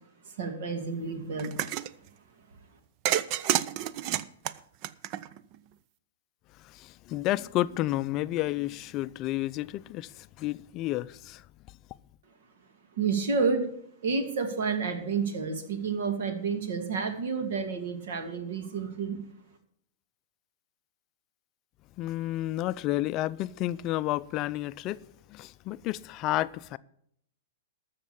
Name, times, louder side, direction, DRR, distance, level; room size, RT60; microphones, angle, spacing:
voice 1, 0.4-1.6 13.0-13.6 14.0-19.2, right 5 dB, 70° right, 2.4 m, -30 dB
sound 1, 1.4-1.9 3.1-5.6, right 12 dB, 45° right, 0.6 m, -29 dB
voice 2, 6.6-11.4 22.0-25.0 25.3-26.8, left 15 dB, 35° left, 0.4 m, -31 dB
13.0 x 6.6 x 7.0 m
hypercardioid pair, 125°, 0 cm